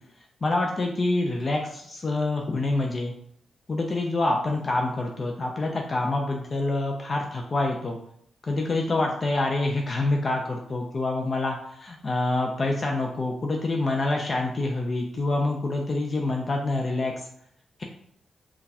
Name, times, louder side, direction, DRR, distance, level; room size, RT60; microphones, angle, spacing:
voice 1, 0.4-3.1 3.7-8.0 8.5-17.1, left 2 dB, 45° left, 1 dB, 0.5 m, -26 dB
3.7 x 2.3 x 2.8 m, 0.69 s
hypercardioid pair, 40°, 0 cm